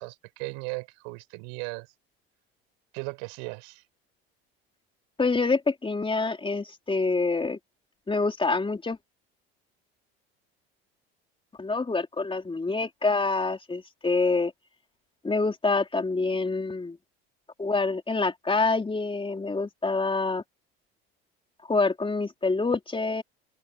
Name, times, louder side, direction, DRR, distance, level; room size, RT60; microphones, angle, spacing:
voice 1, 0.0-1.9 2.9-3.8, right 36 dB, 75° right, 6.7 m, -37 dB
voice 2, 5.2-7.6 8.1-9.0 11.6-14.5 15.2-17.0 17.6-20.4 21.7-23.2, left 3 dB, 15° left, 3.8 m, -26 dB
open air
hypercardioid pair, 80°, 30 cm